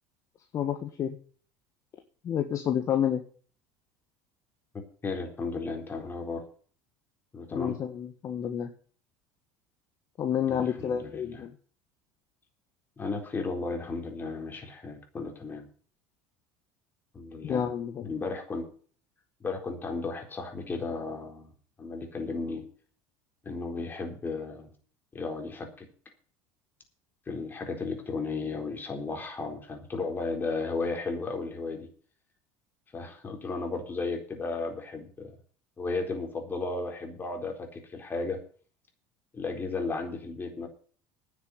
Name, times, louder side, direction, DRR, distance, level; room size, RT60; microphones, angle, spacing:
voice 1, 0.5-1.1 2.2-3.2 7.5-8.7 10.2-11.5 17.4-18.1, left 9 dB, 40° left, 7 dB, 1.5 m, -29 dB
voice 2, 5.0-6.4 7.3-7.8 10.5-11.4 13.0-15.7 17.1-17.7 18.0-18.7 19.4-21.5 21.8-22.6 23.4-24.7 25.1-25.9 27.3-31.9 32.9-35.3 35.8-38.4 39.3-40.7, left 3 dB, 25° left, 4 dB, 4.1 m, -34 dB
9.9 x 7.5 x 9.4 m, 0.43 s
supercardioid pair, 105°, 8 cm